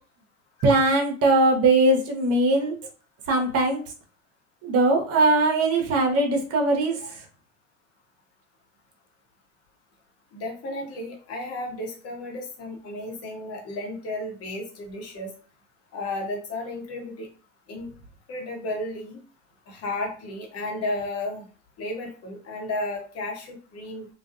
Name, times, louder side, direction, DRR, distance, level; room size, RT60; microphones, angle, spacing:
voice 1, 0.6-2.8 3.3-3.8 4.6-7.0, right 2 dB, 40° right, 3 dB, 0.8 m, -20 dB
voice 2, 10.3-15.3 15.9-17.3 17.7-17.9 18.3-19.2 19.7-21.5 21.8-24.1, left 2 dB, 40° left, 1 dB, 1.0 m, -33 dB
2.4 x 2.3 x 2.4 m, 0.37 s
hypercardioid pair, 80°, 37 cm